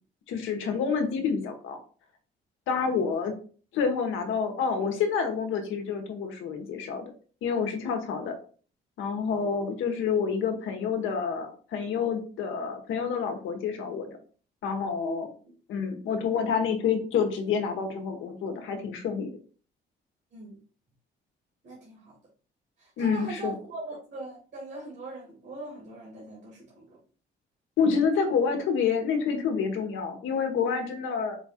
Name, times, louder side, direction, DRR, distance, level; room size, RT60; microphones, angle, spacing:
voice 1, 0.3-1.8 2.7-3.3 3.7-7.1 7.4-8.4 9.0-14.2 14.6-15.3 15.7-19.3 23.0-23.5 27.8-31.4, left 6 dB, 85° left, 5 dB, 1.0 m, -28 dB
voice 2, 21.6-22.2 22.8-27.0, right 2 dB, 60° right, -3 dB, 2.0 m, -40 dB
4.9 x 2.4 x 4.2 m, 0.41 s
cardioid pair, 90°, 20 cm